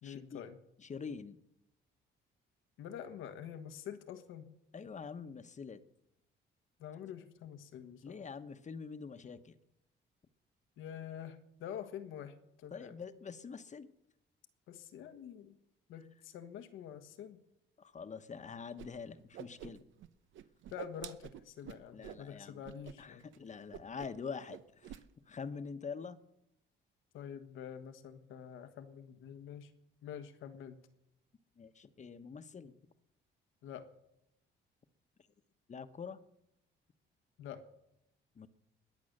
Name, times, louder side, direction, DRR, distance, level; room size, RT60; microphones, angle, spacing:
voice 1, 0.0-0.6 2.8-4.5 6.8-8.3 10.8-12.9 14.7-15.6 15.9-17.4 20.7-23.2 27.1-29.7 30.0-30.9 33.6-33.9 37.4-37.6, left 9 dB, 90° left, 10 dB, 1.4 m, -47 dB
voice 2, 0.8-1.4 4.7-5.8 8.0-9.5 12.7-13.9 17.8-19.8 21.9-22.6 23.0-25.0 25.3-26.2 31.6-32.7 35.7-36.2 38.3-38.5, left 5 dB, 35° left, 11 dB, 1.1 m, -45 dB
Whoosh swoosh swish, 18.8-18.9 19.2-20.1 20.3-22.2 22.6-22.9 23.2-23.4 23.7-24.2 24.5-25.0, right 10 dB, 80° right, 0.8 m, -48 dB
21.0 x 8.6 x 6.6 m, 0.83 s
cardioid pair, 90°, 20 cm